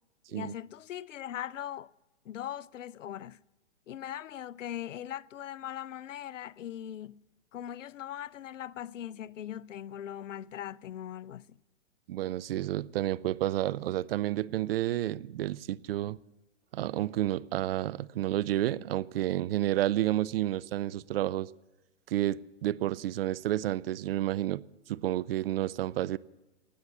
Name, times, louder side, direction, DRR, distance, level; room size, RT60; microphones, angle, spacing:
voice 1, 0.3-1.9 2.3-3.4 3.9-7.2 7.5-11.6, left 11 dB, 85° left, 0.6 m, -40 dB
voice 2, 12.1-16.2 16.7-21.5 22.1-24.6 24.9-26.2, right 14 dB, 55° right, 0.5 m, -30 dB
19.0 x 8.0 x 7.2 m
hypercardioid pair, 130°, 37 cm